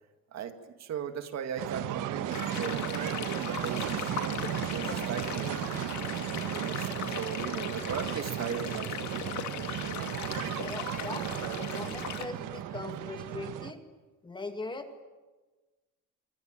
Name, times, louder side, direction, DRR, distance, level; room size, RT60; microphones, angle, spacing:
voice 1, 0.3-5.6 6.6-9.3, right 8 dB, 60° right, 8 dB, 2.1 m, -38 dB
sound 1, 1.6-13.7, right 11 dB, 85° right, 1.5 m, -35 dB
sound 2, 2.3-12.2, left 10 dB, 65° left, 2.2 m, -39 dB
voice 2, 10.4-13.8 14.2-15.0, left 3 dB, 15° left, 6 dB, 2.2 m, -40 dB
25.5 x 25.5 x 8.9 m, 1.2 s
cardioid pair, 160°, 31 cm